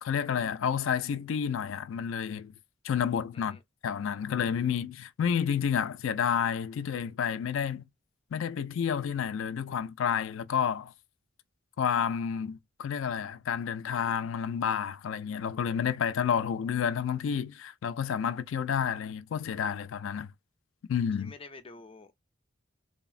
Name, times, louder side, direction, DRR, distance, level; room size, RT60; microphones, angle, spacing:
voice 1, 0.0-2.5 2.8-3.6 3.8-7.9 8.3-10.9 11.8-20.3 20.9-21.3, left 7 dB, 85° left, 0.4 m, -30 dB
voice 2, 21.2-22.1, left 3 dB, 30° left, 0.5 m, -48 dB
3.4 x 2.0 x 2.3 m
head